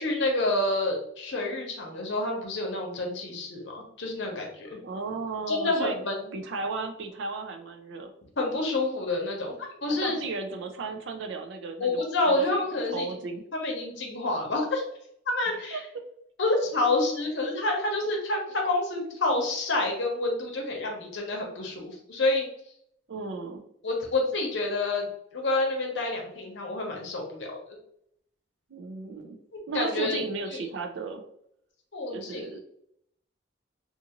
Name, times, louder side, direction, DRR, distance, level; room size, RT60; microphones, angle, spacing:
voice 1, 0.0-4.8 5.5-6.2 8.4-10.2 11.8-13.1 13.5-14.8 15.3-15.8 16.4-22.5 23.8-25.1 25.3-27.6 29.5-30.2 30.5-30.6 31.9-32.5, left 2 dB, 65° left, 0 dB, 0.8 m, -28 dB
voice 2, 4.8-6.0 6.3-8.1 9.9-12.0 12.3-12.4 12.9-13.4 15.5-15.8 23.1-23.6 28.7-29.4 29.7-31.2 32.1-32.6, right 4 dB, 65° right, 5 dB, 0.4 m, -35 dB
2.5 x 2.4 x 2.9 m, 0.72 s
head